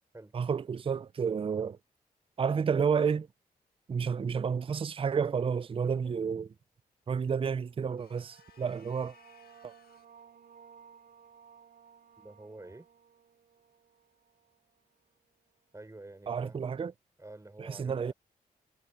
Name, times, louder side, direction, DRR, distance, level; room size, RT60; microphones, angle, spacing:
voice 1, 0.3-1.8 2.4-3.3 3.9-6.5 7.1-9.1 9.6-9.7 16.3-16.9 17.6-18.1, right 6 dB, 35° right, 0.4 m, -30 dB
sound 1, 7.7-14.9, right 7 dB, 75° right, 3.3 m, -58 dB
sound 2, 8.0-10.2, left 9 dB, 80° left, 1.5 m, -62 dB
voice 2, 12.2-12.9 15.7-16.6 17.2-18.1, right 2 dB, 20° right, 5.7 m, -49 dB
cardioid pair, 65°, 16 cm